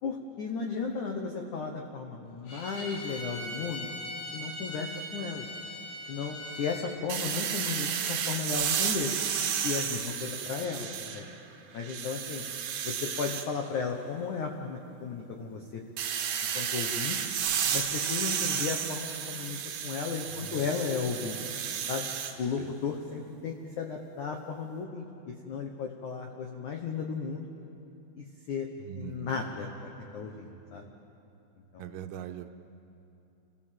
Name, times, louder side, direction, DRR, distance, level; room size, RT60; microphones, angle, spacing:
voice 1, 0.0-3.9 4.3-5.4 6.1-9.1 9.6-11.3 11.7-12.4 12.8-15.8 16.5-17.2 17.7-21.4 21.9-22.1 22.4-27.5 28.2-28.7 29.0-30.9 31.7-31.9, left 5 dB, 85° left, 2 dB, 1.7 m, -35 dB
Bowed string instrument, 2.5-6.9, left 1 dB, 50° left, 3.9 m, -40 dB
sound 1, 7.1-11.4 11.8-13.5 16.0-22.3, right 8 dB, 65° right, 2.5 m, -32 dB
voice 2, 20.3-20.6 22.6-22.7 28.8-29.4 31.8-32.5, right 10 dB, 85° right, 7 dB, 3.2 m, -42 dB
28.5 x 16.0 x 7.6 m, 2.7 s
omnidirectional pair, 5.4 m